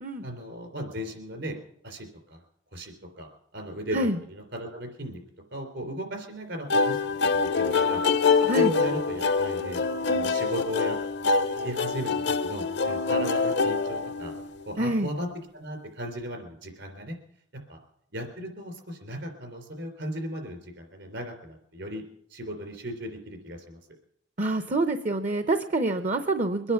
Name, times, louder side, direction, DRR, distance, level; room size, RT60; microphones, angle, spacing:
voice 1, 0.2-1.6 1.8-2.4 2.7-5.2 5.5-7.0 7.3-8.0 8.5-11.0 11.5-12.1 12.4-14.4 14.7-15.3 15.5-17.2 17.7-17.8 18.1-22.0 22.3-23.8, equal, 70° right, 5 dB, 3.6 m, -36 dB
sound 1, 6.7-14.6, left 4 dB, 60° left, 0.6 m, -25 dB
voice 2, 14.8-15.1 24.4-26.7, right 2 dB, 40° right, 9 dB, 0.7 m, -26 dB
23.0 x 9.8 x 5.8 m, 0.72 s
head